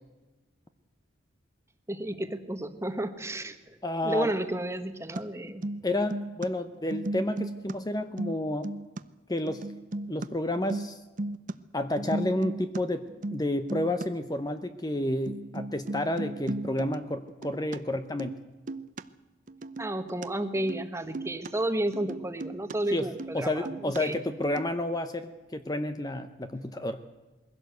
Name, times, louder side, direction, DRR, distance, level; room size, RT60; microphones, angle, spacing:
voice 1, 1.9-3.8 4.0-5.7 19.8-24.2, right 1 dB, 15° right, 9 dB, 1.3 m, -32 dB
voice 2, 3.8-4.3 5.8-8.7 9.3-9.7 10.1-11.0 11.7-13.0 13.3-18.4 22.9-27.0, left 1 dB, 20° left, 9 dB, 0.8 m, -30 dB
sound 1, 5.2-5.3 5.5-6.5 6.8-7.7 8.0-9.0 9.5-10.3 10.5-11.5 11.8-12.8 13.1-13.4 13.7-14.0 14.6-14.7 14.9-15.0 15.3-17.8 18.1-18.4 18.7-19.0 19.5-20.3 20.5-20.9 21.1-21.5 21.9-22.8 23.0-23.4 23.6-24.0 24.4-24.7, right 2 dB, 40° right, 0.7 m, -36 dB
22.0 x 16.0 x 8.0 m, 1.2 s
head